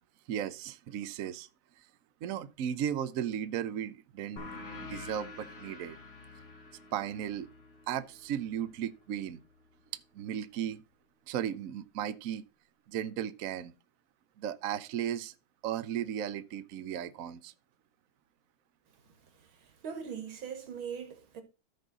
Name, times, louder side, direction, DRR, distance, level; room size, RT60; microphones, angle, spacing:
voice 1, 0.3-1.5 2.2-4.4 4.9-6.0 6.9-7.5 7.9-9.4 10.1-10.8 11.3-12.4 12.9-13.7 14.4-15.3 15.6-17.5, right 9 dB, 60° right, 0.9 m, -35 dB
sound 1, 4.4-9.5, left 3 dB, 30° left, 2.6 m, -48 dB
voice 2, 19.1-21.4, right 7 dB, 80° right, 2.6 m, -42 dB
13.5 x 5.4 x 4.0 m
omnidirectional pair, 2.2 m